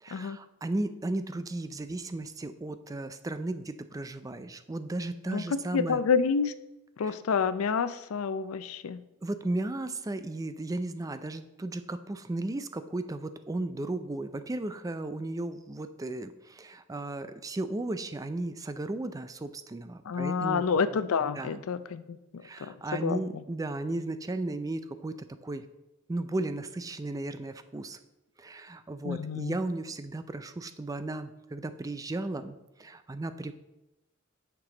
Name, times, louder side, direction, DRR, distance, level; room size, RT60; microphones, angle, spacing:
voice 1, 0.0-6.0 7.0-7.1 9.2-20.6 21.3-21.6 22.4-25.7 26.1-28.0 28.4-33.5, right 2 dB, 15° right, 11 dB, 0.3 m, -35 dB
voice 2, 5.3-6.5 7.0-9.0 20.1-22.2 22.6-22.7 23.0-23.4 29.0-29.6, left 5 dB, 90° left, 14 dB, 0.4 m, -28 dB
8.8 x 6.0 x 3.8 m, 0.96 s
head